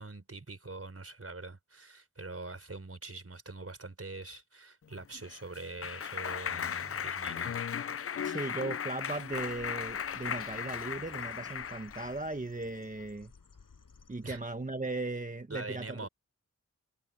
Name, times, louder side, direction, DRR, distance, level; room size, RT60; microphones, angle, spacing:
voice 1, 0.0-7.6 14.2-14.4 15.5-16.1, right 3 dB, 45° right, 4.3 m, -44 dB
Clapping, 5.0-12.2, left 8 dB, 45° left, 0.4 m, -37 dB
voice 2, 8.2-13.3 14.1-16.1, right 2 dB, 25° right, 1.1 m, -37 dB
Bird, 9.1-14.7, left 5 dB, 80° left, 7.7 m, -59 dB
cardioid pair, 45°, 32 cm